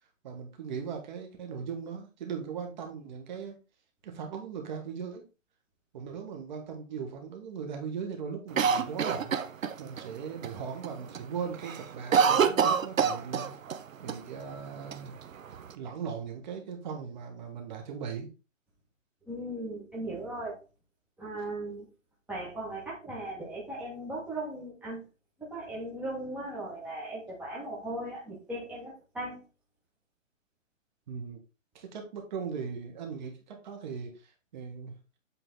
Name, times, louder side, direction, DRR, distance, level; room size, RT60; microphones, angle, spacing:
voice 1, 0.2-3.6 4.0-5.2 5.9-9.4 9.8-13.6 14.0-15.1 15.7-18.3 31.1-31.4 31.7-34.9, right 6 dB, 35° right, 3 dB, 1.6 m, -38 dB
Cough, 8.6-10.0 10.4-10.5 10.8-11.2 11.5-13.8 14.1-14.2 14.9-15.7, right 7 dB, 80° right, 1.0 m, -26 dB
voice 2, 19.3-20.6 21.2-21.8 22.3-25.0 25.4-29.4, right 1 dB, 5° right, -6 dB, 1.5 m, -38 dB
8.2 x 3.9 x 3.9 m, 0.30 s
hypercardioid pair, 155°, 39 cm